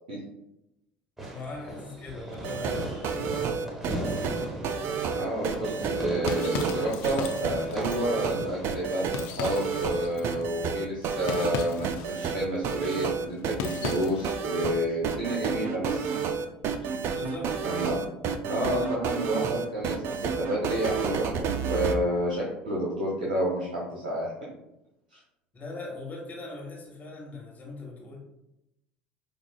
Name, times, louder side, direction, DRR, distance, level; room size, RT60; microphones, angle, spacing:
Fireworks, 1.2-10.2, right 1 dB, 5° right, 1.1 m, -38 dB
voice 1, 1.3-4.4 17.1-17.6 18.7-18.9 25.5-28.2, left 2 dB, 35° left, -2 dB, 1.2 m, -40 dB
sound 1, 2.3-22.0, right 6 dB, 55° right, 0.4 m, -30 dB
voice 2, 5.1-16.1 17.6-18.1 18.5-21.3 21.7-24.3 25.1-25.2, equal, 80° right, -6 dB, 0.9 m, -30 dB
sound 2, 5.8-14.4, left 5 dB, 65° left, 0.4 m, -38 dB
5.1 x 2.4 x 2.3 m, 0.87 s
hypercardioid pair, 70°, 5 cm